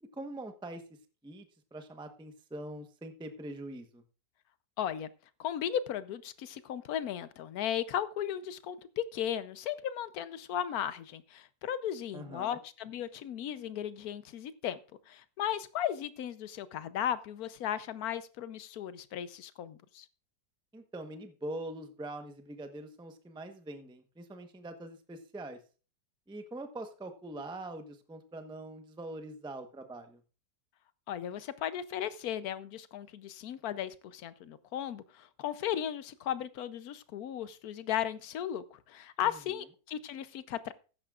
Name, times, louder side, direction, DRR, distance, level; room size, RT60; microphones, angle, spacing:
voice 1, 0.0-0.8 1.2-1.5 1.7-4.0 12.1-12.6 20.7-25.6 26.3-30.2 39.2-39.4, right 1 dB, 5° right, 7 dB, 0.6 m, -43 dB
voice 2, 4.8-5.1 5.4-14.8 15.1-20.1 31.1-40.7, left 10 dB, 65° left, 15 dB, 1.1 m, -36 dB
14.5 x 10.5 x 2.4 m, 0.36 s
omnidirectional pair, 1.9 m